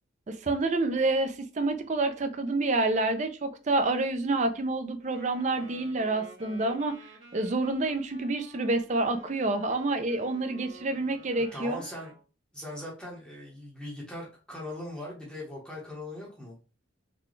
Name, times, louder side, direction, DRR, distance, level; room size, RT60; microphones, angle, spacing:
voice 1, 0.3-6.9 7.3-11.8, right 2 dB, 40° right, 0.4 m, -28 dB
Wind instrument woodwind instrument, 5.1-12.2, right 1 dB, 70° right, 1.7 m, -51 dB
voice 2, 11.5-12.1 12.5-16.5, left 1 dB, 5° left, 1.0 m, -40 dB
4.0 x 2.3 x 3.1 m
head